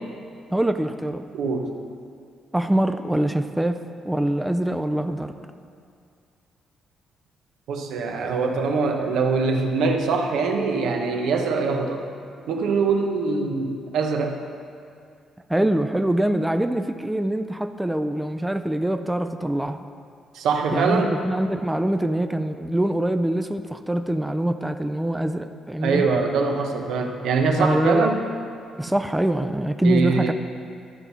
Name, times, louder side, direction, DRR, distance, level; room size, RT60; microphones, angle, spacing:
voice 1, 0.5-1.3 2.5-5.3 15.5-19.8 20.7-26.1 27.6-28.1 28.8-30.3, right 1 dB, 5° right, 8 dB, 0.4 m, -24 dB
voice 2, 1.3-1.7 7.7-12.0 12.5-14.4 20.3-21.2 25.8-28.2 29.8-30.3, right 4 dB, 80° right, 3 dB, 0.9 m, -23 dB
12.0 x 4.5 x 5.5 m, 2.3 s
cardioid pair, 90°, 0 cm